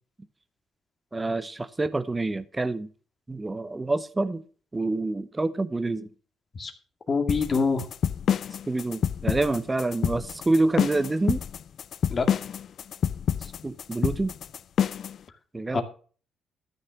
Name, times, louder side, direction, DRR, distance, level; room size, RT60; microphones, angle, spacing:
voice 1, 1.1-2.9 3.3-4.4 4.7-6.1 8.7-11.4 13.4-14.3 15.5-15.8, right 2 dB, 20° right, 0.9 m, -27 dB
voice 2, 7.1-7.8 12.1-12.3 15.7-15.8, left 4 dB, 40° left, 2.2 m, -24 dB
sound 1, 7.3-15.2, left 8 dB, 60° left, 0.4 m, -27 dB
13.0 x 6.6 x 5.9 m
cardioid pair, 90°, 0 cm